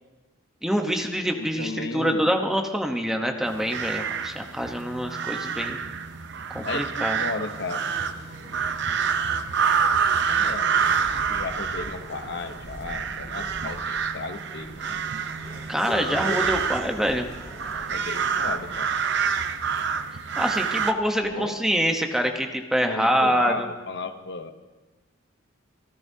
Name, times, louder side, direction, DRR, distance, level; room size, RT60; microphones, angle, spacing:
voice 1, 0.6-5.8 6.5-7.2 15.7-17.3 20.4-23.7, equal, ahead, 4 dB, 0.9 m, -25 dB
voice 2, 1.4-2.3 6.6-7.9 10.3-10.8 11.2-15.0 16.1-16.7 17.9-18.9 21.2-21.6 22.8-24.5, left 3 dB, 55° left, 8 dB, 0.8 m, -34 dB
sound 1, 3.5-20.9, right 6 dB, 55° right, 0.7 m, -27 dB
Race car auto racing / Accelerating revving vroom, 6.0-21.6, left 1 dB, 35° left, 3.0 m, -44 dB
25.5 x 14.5 x 2.7 m, 1.2 s
head